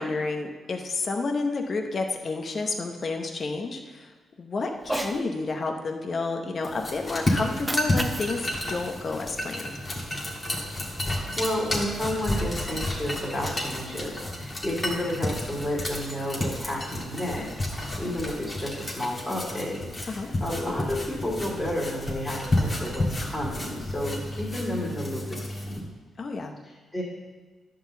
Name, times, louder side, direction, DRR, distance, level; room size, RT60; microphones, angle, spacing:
voice 1, 0.0-4.1 4.4-9.7 20.1-20.3 26.2-26.5, left 3 dB, 40° left, 3 dB, 0.8 m, -30 dB
Cat, 4.8-5.2 7.4-9.8, right 1 dB, 10° right, 0.7 m, -35 dB
sound 1, 6.6-25.8, left 1 dB, 25° left, 1.8 m, -31 dB
voice 2, 11.1-25.9 26.6-27.0, left 1 dB, 5° left, -7 dB, 2.7 m, -31 dB
11.0 x 3.9 x 6.9 m, 1.3 s
cardioid pair, 110°, 0 cm